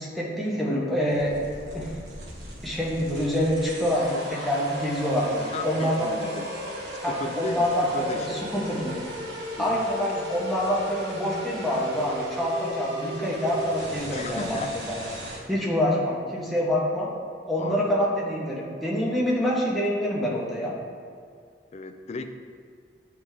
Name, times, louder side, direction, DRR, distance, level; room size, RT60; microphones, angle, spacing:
voice 1, 0.0-1.4 1.7-2.0 2.6-6.3 7.0-9.0 9.6-15.0 15.5-17.1 17.5-20.7, equal, ahead, -6 dB, 1.1 m, -26 dB
sound 1, 1.1-15.4, right 1 dB, 70° right, 1.4 m, -37 dB
voice 2, 5.5-6.5 7.1-8.5 9.6-9.8 14.1-14.7 17.6-17.8 21.7-22.5, left 3 dB, 40° left, 7 dB, 0.3 m, -35 dB
9.5 x 3.5 x 3.3 m, 2.1 s
head